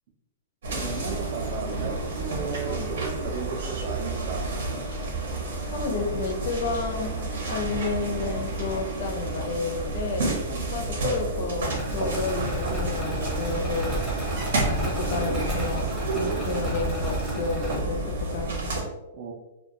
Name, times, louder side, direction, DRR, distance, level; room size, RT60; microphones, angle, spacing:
sound 1, 0.6-18.8, right 2 dB, 75° right, 0.7 m, -30 dB
voice 1, 0.7-4.4 10.5-10.6 16.2-16.4 19.1-19.3, right 5 dB, 45° right, 3 dB, 0.4 m, -35 dB
voice 2, 5.7-10.3 10.7-14.0 14.7-15.8 16.1-18.7, left 4 dB, 50° left, 4 dB, 0.4 m, -31 dB
sound 2, 11.7-17.8, right 1 dB, 10° right, 0.7 m, -32 dB
2.2 x 2.1 x 2.7 m, 0.98 s
hypercardioid pair, 170°, 0 cm